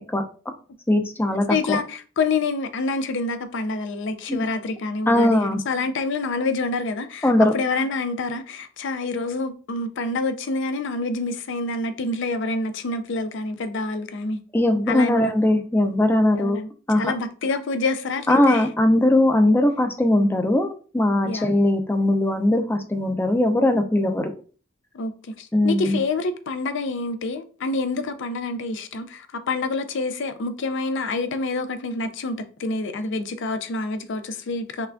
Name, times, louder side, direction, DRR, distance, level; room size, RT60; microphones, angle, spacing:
voice 1, 0.9-1.8 4.3-4.4 5.1-5.6 7.2-7.5 14.5-16.6 16.9-17.1 18.3-24.3 25.5-26.0, left 1 dB, 10° left, 0.4 m, -20 dB
voice 2, 1.5-14.4 14.9-15.3 16.4-16.7 16.9-18.7 21.2-21.5 24.9-25.1 25.4-34.9, left 3 dB, 65° left, 0.5 m, -27 dB
5.6 x 2.3 x 2.5 m
head